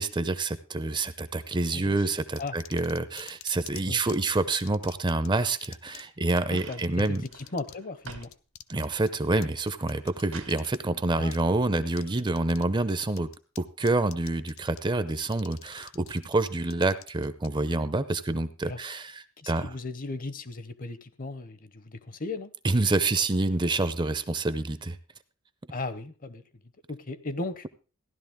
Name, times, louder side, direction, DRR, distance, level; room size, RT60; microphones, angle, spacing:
voice 1, 0.0-7.2 8.7-13.3 13.6-19.7 22.6-25.0, right 2 dB, 20° right, 14 dB, 0.6 m, -27 dB
sound 1, 2.4-4.2 4.6-5.3 5.6-6.0 6.3-6.4 6.8-7.8 8.0-10.8 11.3-11.4 11.9-12.6 12.9-13.6 13.9-14.8 15.1-17.5, left 11 dB, 70° left, 0.7 m, -46 dB
voice 2, 6.5-8.3 11.2-11.4 18.7-18.8 19.4-22.5 25.7-26.4 26.9-27.7, left 3 dB, 40° left, 13 dB, 0.8 m, -36 dB
sound 2, 6.5-8.3 8.7-9.2 9.7-10.6 11.8-11.9, right 5 dB, 85° right, 2.0 m, -47 dB
15.5 x 11.0 x 3.6 m, 0.36 s
head